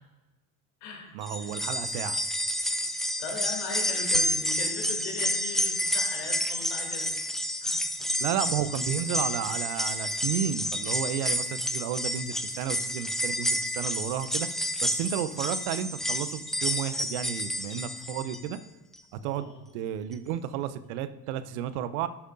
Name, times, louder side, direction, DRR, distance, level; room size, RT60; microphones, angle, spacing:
voice 1, 1.1-2.2 8.2-14.5 14.8-18.6 19.1-22.1, right 10 dB, 65° right, 12 dB, 0.8 m, -32 dB
sound 1, 1.2-18.5 18.9-19.0 20.1-20.2, equal, ahead, 0.7 m, -30 dB
voice 2, 3.2-7.1 7.6-7.8 19.3-19.4, left 4 dB, 70° left, 1 dB, 2.9 m, -38 dB
11.5 x 7.9 x 2.6 m, 1.1 s
figure-of-eight pair, 60°, 48 cm